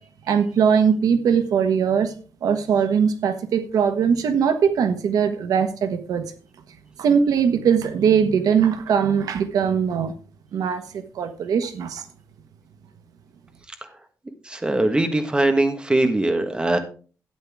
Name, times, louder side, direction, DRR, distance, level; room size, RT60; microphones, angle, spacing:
voice 1, 0.3-2.1 2.4-6.2 7.0-10.1 10.5-12.0, right 7 dB, 85° right, 9 dB, 1.2 m, -20 dB
voice 2, 14.4-16.8, right 2 dB, 15° right, 6 dB, 1.4 m, -21 dB
12.5 x 9.4 x 3.5 m, 0.39 s
wide cardioid pair, 150°, 6 cm